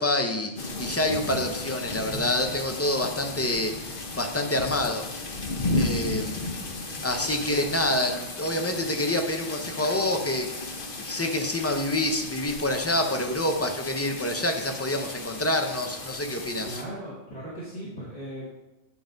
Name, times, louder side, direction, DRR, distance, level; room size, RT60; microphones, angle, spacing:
voice 1, 0.0-5.0 5.7-6.4 7.0-16.8, left 1 dB, 15° left, 4 dB, 0.6 m, -27 dB
sound 1, 0.6-16.8, left 2 dB, 50° left, 1.1 m, -34 dB
voice 2, 16.6-18.6, right 1 dB, 35° left, -9 dB, 1.8 m, -38 dB
9.5 x 3.9 x 5.1 m, 0.99 s
omnidirectional pair, 1.2 m